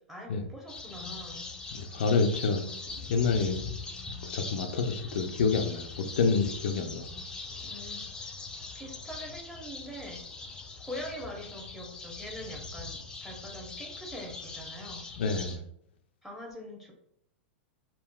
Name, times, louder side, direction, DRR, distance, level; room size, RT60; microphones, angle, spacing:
voice 1, 0.1-1.5 2.4-3.3 7.6-8.4 8.7-10.5 10.8-15.1 16.2-16.9, equal, 5° right, 0.9 m, -44 dB
sound 1, 0.7-15.6, left 3 dB, 10° left, 0.5 m, -42 dB
voice 2, 1.7-2.6 3.1-3.6 4.2-7.1 15.2-15.6, left 4 dB, 70° left, 0.4 m, -28 dB
3.5 x 2.1 x 2.2 m
hypercardioid pair, 110°, 6 cm